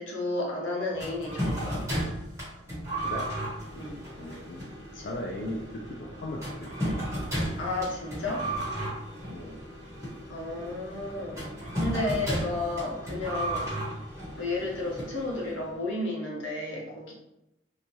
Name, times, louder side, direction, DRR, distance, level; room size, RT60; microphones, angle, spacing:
voice 1, 0.0-2.0 3.7-4.0 4.9-5.1 7.6-8.4 10.3-11.4 11.7-13.7 14.4-17.1, left 2 dB, 85° left, -3 dB, 0.8 m, -32 dB
sound 1, 1.0-15.7, right 1 dB, 15° right, 1.0 m, -34 dB
voice 2, 4.2-4.6 5.0-7.0 9.3-9.6, left 1 dB, 55° left, -1 dB, 0.3 m, -37 dB
2.7 x 2.2 x 2.9 m, 0.88 s
head